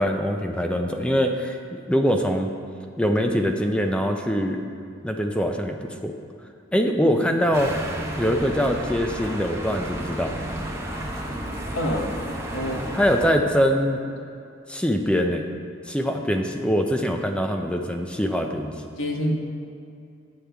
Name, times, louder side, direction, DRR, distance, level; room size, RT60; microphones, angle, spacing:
voice 1, 0.0-2.5 3.0-4.6 5.0-6.1 6.7-7.8 8.1-10.3 12.9-14.0 14.7-15.5 15.9-18.7, equal, 5° left, 4 dB, 0.5 m, -23 dB
sound 1, 7.5-13.3, right 1 dB, 15° right, 0.8 m, -32 dB
voice 2, 11.7-12.1 12.5-12.9 18.8-19.4, equal, 85° left, 0 dB, 1.0 m, -27 dB
9.5 x 8.7 x 3.4 m, 2.5 s
head